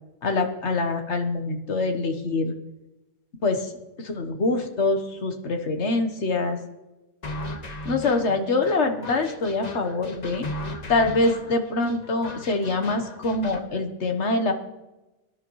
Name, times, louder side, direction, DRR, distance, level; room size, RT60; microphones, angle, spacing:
voice 1, 0.2-2.5 3.4-3.7 4.0-6.6 7.8-10.5 10.9-14.5, left 3 dB, 75° left, 6 dB, 1.5 m, -24 dB
sound 1, 7.2-13.6, left 1 dB, 40° left, 1.1 m, -36 dB
23.5 x 11.0 x 3.1 m, 1.0 s
omnidirectional pair, 1.2 m